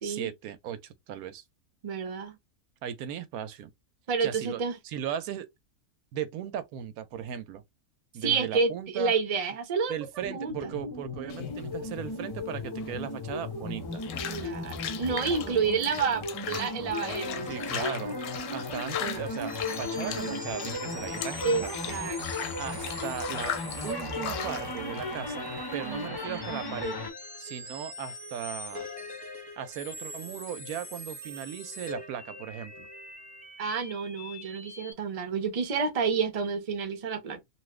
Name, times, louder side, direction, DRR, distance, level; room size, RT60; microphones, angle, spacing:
voice 1, 0.0-1.4 2.8-3.7 4.2-5.5 6.1-7.6 8.1-9.1 9.9-14.0 17.5-21.7 22.6-23.5 23.8-27.0 27.4-28.9 29.6-32.9, right 9 dB, 80° right, 1.0 m, -37 dB
voice 2, 1.8-2.3 4.1-4.8 8.2-9.9 10.3-10.7 14.3-17.7 20.0-20.4 21.4-22.2 25.8-26.1 33.6-37.4, right 5 dB, 40° right, 0.5 m, -29 dB
sound 1, 10.2-27.1, left 2 dB, 30° left, 0.4 m, -36 dB
sound 2, 11.3-26.1, left 10 dB, 70° left, 0.9 m, -39 dB
sound 3, 17.0-34.9, left 1 dB, 5° left, 0.8 m, -43 dB
2.9 x 2.4 x 3.2 m
omnidirectional pair, 1.5 m